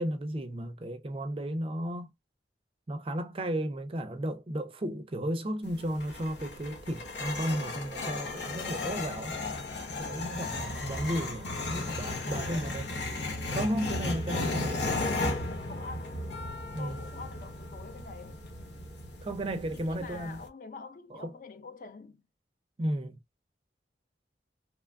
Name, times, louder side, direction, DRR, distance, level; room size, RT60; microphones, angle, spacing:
voice 1, 0.0-2.1 2.9-9.3 10.0-12.9 13.5-14.9 16.7-17.1 19.2-20.4 21.1-21.3 22.8-23.2, right 1 dB, 30° right, 0.4 m, -34 dB
sound 1, 5.6-20.5, left 2 dB, 70° left, 0.8 m, -35 dB
voice 2, 10.1-10.5 11.6-12.7 14.3-16.3 16.8-18.5 19.7-22.2, left 4 dB, 45° left, 0.4 m, -46 dB
3.0 x 2.3 x 2.2 m
head